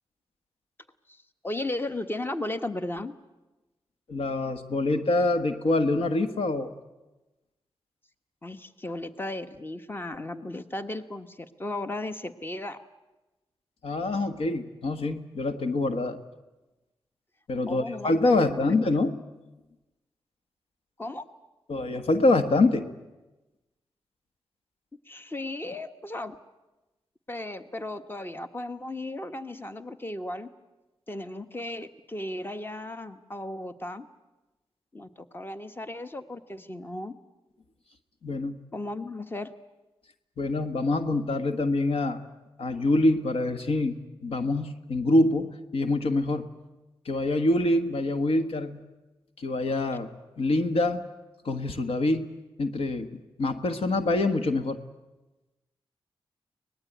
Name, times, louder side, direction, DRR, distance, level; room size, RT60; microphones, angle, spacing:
voice 1, 1.1-3.1 8.4-12.8 17.7-19.0 21.0-21.3 25.1-26.4 27.3-30.5 31.1-34.1 34.9-37.1 38.7-39.5, left 1 dB, 25° left, 9 dB, 1.3 m, -35 dB
voice 2, 4.1-6.7 13.8-16.2 17.5-19.2 21.7-22.9 38.2-38.6 40.4-42.2 42.6-46.5 47.0-48.8 49.4-50.1 50.4-51.0 51.4-52.3 52.6-53.1 53.4-54.8, left 2 dB, 85° left, 8 dB, 1.5 m, -25 dB
24.0 x 19.5 x 9.3 m, 1.1 s
cardioid pair, 70°, 9 cm